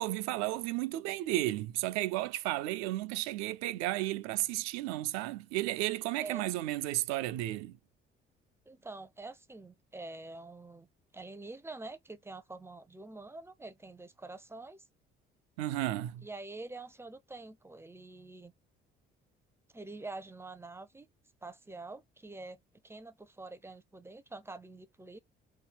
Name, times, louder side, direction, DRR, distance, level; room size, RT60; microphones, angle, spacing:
voice 1, 0.0-7.8 15.6-16.3, right 16 dB, 65° right, 0.4 m, -33 dB
voice 2, 6.2-6.5 8.7-10.9 11.1-14.8 16.2-18.5 19.7-21.1 21.4-22.6 22.8-25.2, right 3 dB, 10° right, 0.5 m, -46 dB
3.0 x 2.2 x 3.4 m
hypercardioid pair, 50°, 29 cm